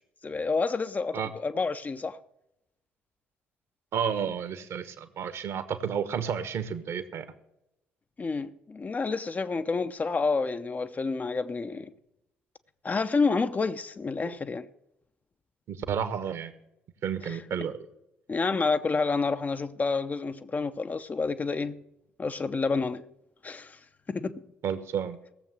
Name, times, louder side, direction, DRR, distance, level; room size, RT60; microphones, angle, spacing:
voice 1, 0.2-2.2 8.2-11.9 12.8-14.7 17.2-17.4 18.3-21.8 22.2-23.0 23.4-23.8 24.1-24.4, left 4 dB, 30° left, 0.7 m, -29 dB
voice 2, 3.9-7.3 15.7-16.5 17.0-17.8 24.6-25.2, right 7 dB, 50° right, 1.3 m, -31 dB
17.0 x 7.4 x 6.3 m
figure-of-eight pair, 45°, 6 cm